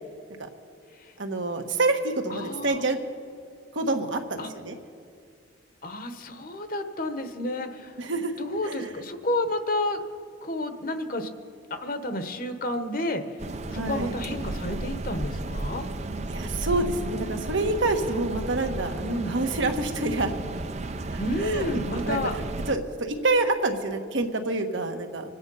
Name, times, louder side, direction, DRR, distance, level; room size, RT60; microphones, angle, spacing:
voice 1, 1.2-3.0 3.7-4.7 8.0-8.9 13.7-14.1 16.3-20.3 21.1-25.3, right 2 dB, 75° right, 5 dB, 1.3 m, -28 dB
voice 2, 2.3-2.8 4.4-4.5 5.8-8.0 8.4-10.0 10.4-11.3 11.7-13.4 13.7-15.9 19.0-19.3 21.2-22.3, left 1 dB, 45° left, 8 dB, 1.1 m, -30 dB
sound 1, 13.4-22.8, right 2 dB, 35° right, 0.5 m, -33 dB
25.5 x 9.3 x 5.5 m, 2.4 s
head